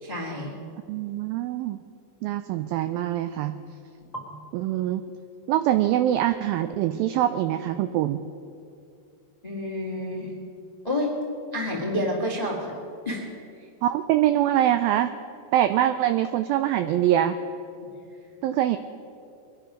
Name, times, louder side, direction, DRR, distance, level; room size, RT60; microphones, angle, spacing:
voice 1, 0.0-0.5 4.3-4.4 9.4-10.3 10.8-11.1 11.5-12.7 13.0-13.2 17.8-17.9, left 1 dB, 25° left, -2 dB, 0.9 m, -29 dB
voice 2, 0.9-1.8 2.2-3.6 4.5-5.0 5.5-8.2 13.8-15.1 15.5-17.4 18.4-18.8, right 12 dB, 90° right, 10 dB, 2.0 m, -23 dB
23.0 x 10.0 x 5.2 m, 2.6 s
omnidirectional pair, 4.7 m